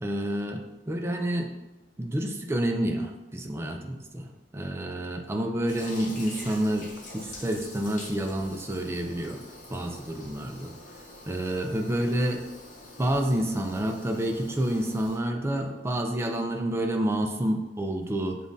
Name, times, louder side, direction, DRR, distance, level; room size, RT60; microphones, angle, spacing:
voice 1, 0.0-1.5 2.0-9.4 9.7-10.7 11.3-12.4 13.0-18.4, right 1 dB, 15° right, 3 dB, 0.3 m, -29 dB
Toilet flush, 5.7-15.2, left 2 dB, 45° left, 1.0 m, -45 dB
7.0 x 2.4 x 2.6 m, 1.0 s
head